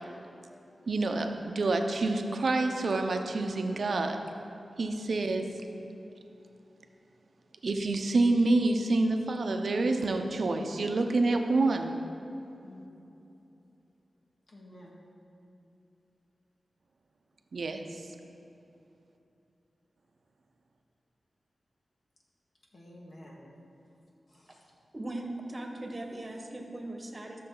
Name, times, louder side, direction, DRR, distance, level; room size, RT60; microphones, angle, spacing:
voice 1, 0.9-4.2 4.8-5.5 7.6-11.9 17.5-18.0, right 2 dB, 70° right, 5 dB, 0.7 m, -27 dB
voice 2, 12.6-13.2 14.5-15.0 22.7-23.4 24.3-24.7, left 1 dB, 55° left, -3 dB, 2.0 m, -52 dB
voice 3, 24.9-27.4, right 1 dB, 35° right, 2 dB, 1.3 m, -39 dB
13.0 x 6.6 x 3.9 m, 2.9 s
wide cardioid pair, 70°, 0 cm